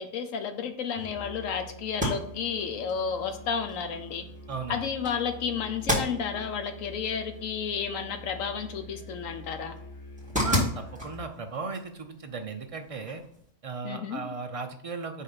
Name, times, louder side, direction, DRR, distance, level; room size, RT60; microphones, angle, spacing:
voice 1, 0.0-4.2 4.7-9.8 13.8-14.2, left 6 dB, 80° left, 8 dB, 1.2 m, -32 dB
Musical instrument, 1.0-11.3, equal, 30° left, 1.0 m, -46 dB
sound 1, 1.8-13.5, left 1 dB, 5° right, 1.9 m, -36 dB
voice 2, 4.5-4.9 10.4-13.2 13.6-15.2, right 4 dB, 45° right, 5 dB, 0.4 m, -36 dB
5.5 x 3.7 x 5.6 m, 0.67 s
omnidirectional pair, 1.3 m